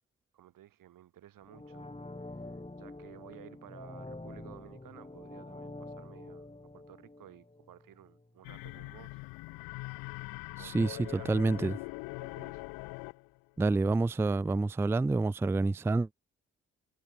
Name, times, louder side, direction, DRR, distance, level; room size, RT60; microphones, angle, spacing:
voice 1, 0.3-1.9 2.2-6.5 6.7-9.2 10.6-11.3 11.6-11.8 12.2-12.6, right 12 dB, 75° right, 5.6 m, -54 dB
sound 1, 1.4-8.3 8.6-8.7, left 2 dB, 20° left, 5.5 m, -47 dB
sound 2, 8.4-13.4, left 27 dB, 85° left, 1.5 m, -42 dB
voice 2, 10.6-11.8 13.6-16.1, right 3 dB, 10° right, 0.3 m, -28 dB
hypercardioid pair, 40°, 34 cm